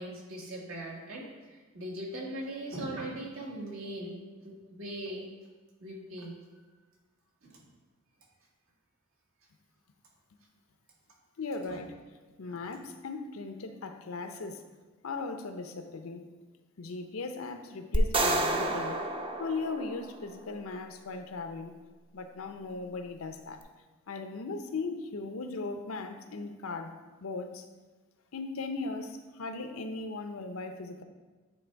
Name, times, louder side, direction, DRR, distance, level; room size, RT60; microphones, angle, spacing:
voice 1, 0.0-4.1 4.4-5.2 5.8-6.3 7.4-7.6 11.7-11.8 12.5-12.7, right 1 dB, 75° right, -2 dB, 1.6 m, -40 dB
voice 2, 11.4-12.0 12.4-14.6 15.0-16.3 16.8-19.0 19.4-21.7 22.1-23.6 24.1-27.6 28.3-31.0, left 3 dB, 85° left, 7 dB, 0.6 m, -38 dB
sound 1, 17.9-20.3, right 2 dB, 25° right, 0.6 m, -30 dB
9.3 x 3.4 x 4.5 m, 1.3 s
head